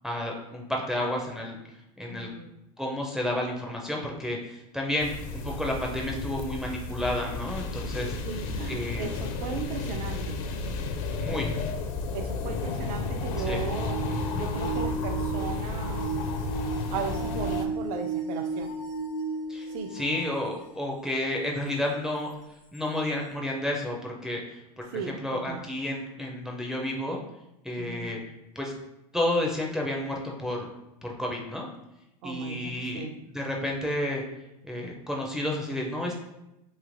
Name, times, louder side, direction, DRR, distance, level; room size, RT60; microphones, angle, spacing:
voice 1, 0.0-1.6 2.0-2.3 2.8-8.1 8.7-9.1 11.2-11.5 13.5-13.6 19.5-19.7 19.9-22.3 22.7-27.2 27.6-28.2 28.6-28.7 29.1-30.7 31.0-31.7 32.2-33.1 33.3-34.2 34.7-36.1, left 1 dB, 5° right, -1 dB, 0.4 m, -31 dB
voice 2, 2.1-2.5 8.2-10.4 12.1-14.0 14.3-16.1 16.9-18.7 19.7-19.9 24.9-25.6 27.8-28.1 32.2-33.1, right 6 dB, 70° right, 6 dB, 0.5 m, -36 dB
sound 1, 5.0-17.7, left 3 dB, 60° left, 0.4 m, -32 dB
sound 2, 13.3-20.9 21.6-21.7 22.7-22.8, right 4 dB, 80° left, 1.0 m, -34 dB
3.1 x 2.7 x 2.5 m, 0.91 s
supercardioid pair, 115°, 20 cm